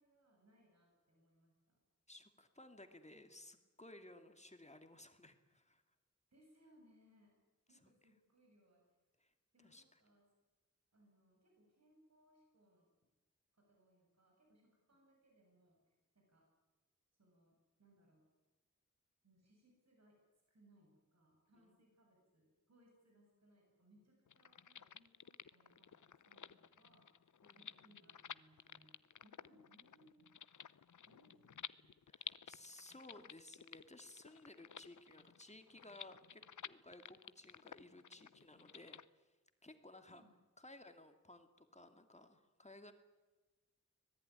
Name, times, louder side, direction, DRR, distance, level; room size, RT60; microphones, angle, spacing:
voice 1, 0.0-1.8 6.3-7.3 7.7-9.0 9.5-10.3 10.9-12.9 13.5-16.5 17.2-18.2 19.2-20.2 20.5-27.1 27.5-28.9 29.2-30.3 31.1-32.0 40.1-40.4, right 1 dB, 60° right, 0 dB, 7.6 m, -70 dB
voice 2, 2.1-5.8 7.7-7.9 9.2-9.3 9.6-10.0 21.6-21.8 27.4-27.6 32.1-39.4 39.6-40.2 40.6-42.9, left 1 dB, 25° left, 6 dB, 2.3 m, -58 dB
sound 1, 24.3-39.0, left 8 dB, 80° left, 0.7 m, -54 dB
24.5 x 19.0 x 9.9 m, 1.2 s
wide cardioid pair, 95°, 30 cm